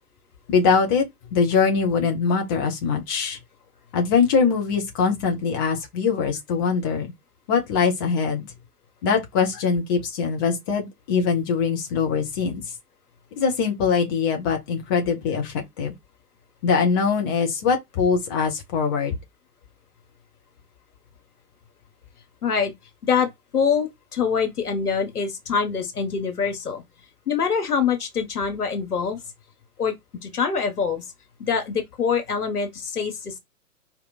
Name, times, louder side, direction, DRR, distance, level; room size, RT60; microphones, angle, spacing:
voice 1, 0.5-1.1 1.3-3.4 3.9-7.1 7.5-8.5 9.0-12.6 13.4-15.9 16.6-19.1, left 5 dB, 15° left, 0.5 m, -22 dB
voice 2, 23.0-26.8 27.3-29.2 29.8-30.0 30.2-31.1 31.4-33.4, left 6 dB, 65° left, 1.5 m, -24 dB
4.5 x 2.8 x 4.0 m
figure-of-eight pair, 115°, 49 cm